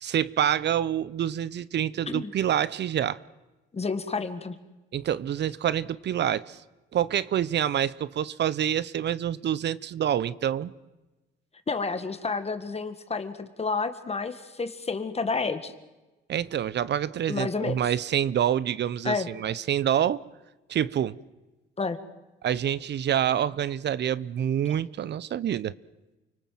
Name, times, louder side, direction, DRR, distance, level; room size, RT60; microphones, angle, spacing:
voice 1, 0.0-3.2 4.9-6.6 6.9-10.7 16.3-20.2 20.7-21.2 22.4-25.7, right 10 dB, 55° right, 0.8 m, -27 dB
voice 2, 3.7-4.6 11.7-15.7 17.3-17.8 19.0-19.3 21.8-22.0, left 4 dB, 30° left, 1.9 m, -30 dB
29.5 x 19.0 x 7.7 m
supercardioid pair, 70°, 21 cm